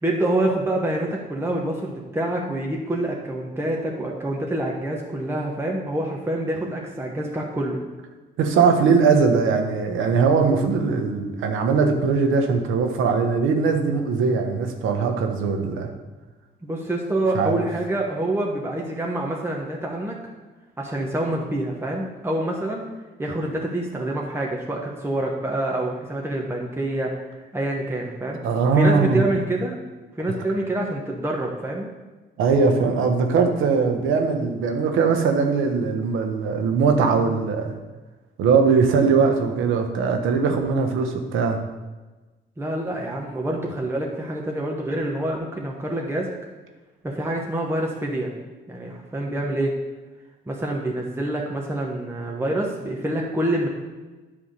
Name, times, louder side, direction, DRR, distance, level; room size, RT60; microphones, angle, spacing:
voice 1, 0.0-7.8 16.6-20.2 20.8-22.8 23.2-27.1 27.5-28.4 28.7-29.8 30.2-31.9 42.6-46.3 47.0-48.3 48.7-49.7 50.5-53.7, right 1 dB, 10° right, -1 dB, 1.1 m, -26 dB
voice 2, 8.4-15.9 17.3-17.6 28.4-29.3 32.4-37.8 38.4-41.6, right 5 dB, 85° right, 5 dB, 1.1 m, -20 dB
10.0 x 3.6 x 6.6 m, 1.2 s
cardioid pair, 90°, 20 cm